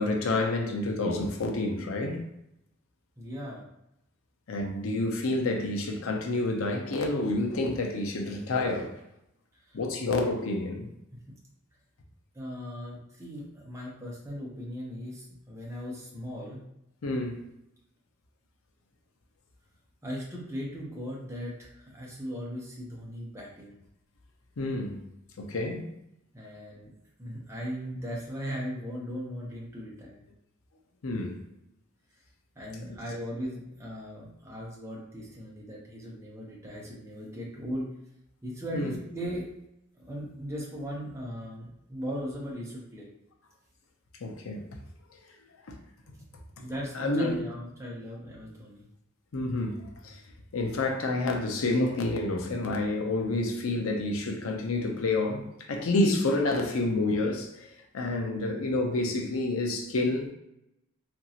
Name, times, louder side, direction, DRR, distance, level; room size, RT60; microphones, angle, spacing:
voice 1, 0.0-2.2 4.5-9.0 9.7-10.9 17.0-17.5 24.6-25.0 25.4-25.9 31.0-31.4 38.7-38.9 44.2-44.6 46.9-47.4 49.3-50.2 50.5-57.7 57.9-60.3, left 2 dB, 90° left, 0.6 m, -29 dB
voice 2, 3.2-3.6 9.7-9.8 12.3-16.6 20.0-23.8 26.3-26.9 27.2-30.2 32.6-37.9 38.4-39.5 40.0-43.1 46.6-48.9, equal, 15° right, 0.7 m, -38 dB
2.9 x 2.6 x 2.8 m
head